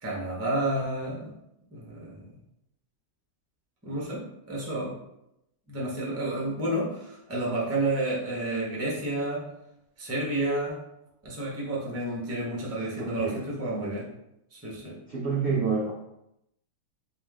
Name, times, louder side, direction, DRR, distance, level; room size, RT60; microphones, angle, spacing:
voice 1, 0.0-1.3 1.7-2.3 3.8-4.9 5.7-9.4 10.0-10.8 11.2-14.1 14.5-15.0, right 1 dB, 15° right, -5 dB, 0.6 m, -30 dB
voice 2, 13.0-13.4 15.1-15.9, right 5 dB, 60° right, -5 dB, 0.7 m, -28 dB
3.7 x 2.7 x 3.5 m, 0.84 s
omnidirectional pair, 1.9 m